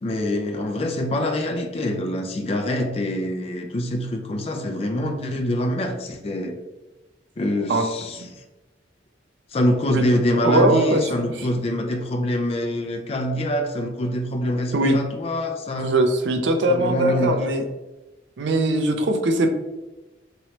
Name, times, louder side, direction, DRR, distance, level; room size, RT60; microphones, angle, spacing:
voice 1, 0.0-6.6 7.4-8.2 9.5-15.9 16.7-17.4, left 1 dB, 30° left, 3 dB, 0.4 m, -25 dB
voice 2, 10.3-11.1 14.7-15.0 15.8-17.6 18.4-19.5, right 1 dB, 75° right, 6 dB, 0.5 m, -20 dB
3.1 x 2.9 x 2.8 m, 1.1 s
head